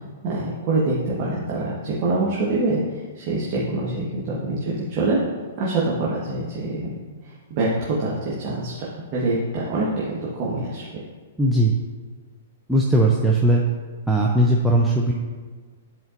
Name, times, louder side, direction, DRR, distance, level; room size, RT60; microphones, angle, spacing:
voice 1, 0.2-2.8 3.1-5.2 5.6-7.0 7.2-10.8, right 2 dB, 40° right, -6 dB, 1.3 m, -25 dB
voice 2, 11.4-11.7 12.7-13.6 14.1-15.1, right 1 dB, ahead, -3 dB, 0.6 m, -18 dB
10.5 x 4.3 x 2.6 m, 1.5 s
figure-of-eight pair, 110°, 0 cm